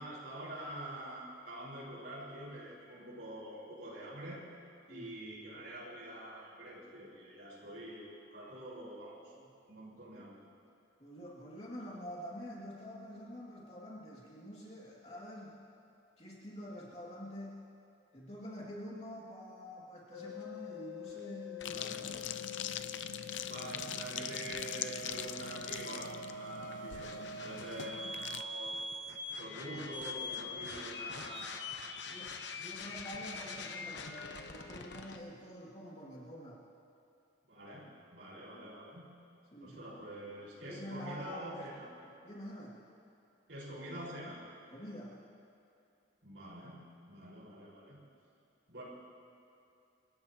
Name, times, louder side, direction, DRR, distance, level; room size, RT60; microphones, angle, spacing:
voice 1, 0.0-4.4 4.9-9.3 9.7-10.4 21.7-22.0 23.4-28.9 29.4-31.8 37.5-39.1 39.6-41.9 43.5-44.4 46.2-46.8 47.0-48.0 48.7-48.8, right 1 dB, 70° right, -6 dB, 5.0 m, -46 dB
voice 2, 11.0-15.6 16.2-17.6 18.1-22.3 32.1-36.6 39.5-40.0 40.6-41.7 42.2-42.8 44.7-45.2, equal, 35° left, -5 dB, 2.5 m, -47 dB
sound 1, 20.1-35.2, left 2 dB, 70° left, 1.1 m, -44 dB
sound 2, 21.6-28.4, left 9 dB, 85° left, 0.6 m, -42 dB
27.5 x 16.0 x 3.0 m, 2.6 s
head